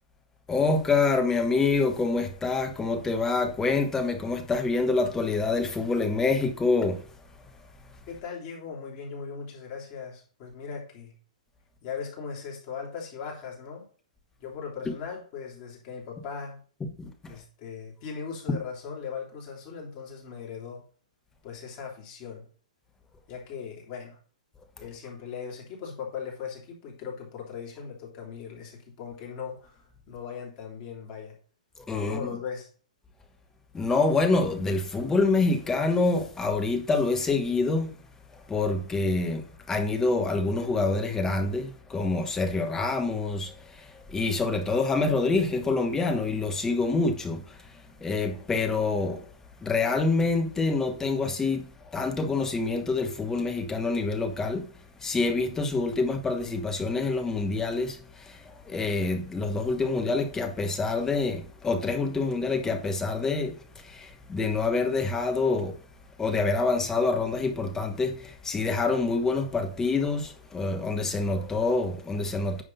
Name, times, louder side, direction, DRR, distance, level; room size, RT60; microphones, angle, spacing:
voice 1, 0.5-7.0 16.8-17.4 24.8-24.9 31.8-32.3 33.7-38.0 38.3-49.3 49.6-54.7 55.0-65.8 66.2-72.6, left 3 dB, 10° left, 1.1 m, -26 dB
voice 2, 8.1-11.1 11.8-13.9 14.4-16.6 17.3-20.8 21.4-22.5 23.3-24.2 24.8-31.4 32.0-32.7, left 6 dB, 40° left, 3.4 m, -38 dB
9.4 x 3.6 x 5.6 m
hypercardioid pair, 140°, 4 cm